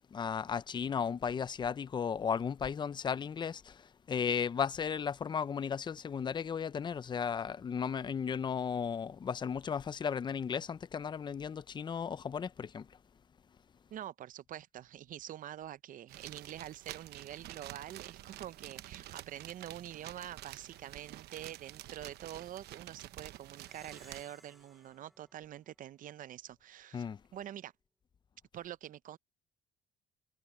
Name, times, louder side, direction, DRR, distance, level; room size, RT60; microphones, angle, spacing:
voice 1, 0.0-12.9 26.9-27.2, left 7 dB, 25° left, 0.5 m, -35 dB
voice 2, 13.9-27.1 27.3-27.7 28.5-29.2, right 11 dB, 55° right, 0.6 m, -46 dB
sound 1, 16.1-24.2, right 14 dB, 75° right, 1.0 m, -49 dB
Plucked string instrument, 23.6-26.4, equal, ahead, 2.2 m, -62 dB
cardioid pair, 110°, 17 cm